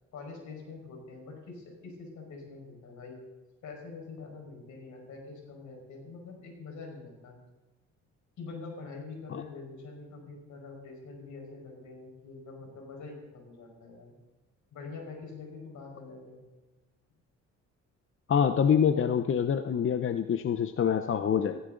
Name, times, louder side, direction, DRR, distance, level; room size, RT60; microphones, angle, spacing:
voice 1, 0.1-3.2 3.6-7.4 8.4-14.1 14.7-16.4, left 4 dB, 75° left, 1 dB, 5.2 m, -45 dB
voice 2, 18.3-21.6, left 7 dB, 45° left, 9 dB, 0.7 m, -26 dB
16.5 x 15.5 x 3.9 m, 1.1 s
cardioid pair, 90°, 30 cm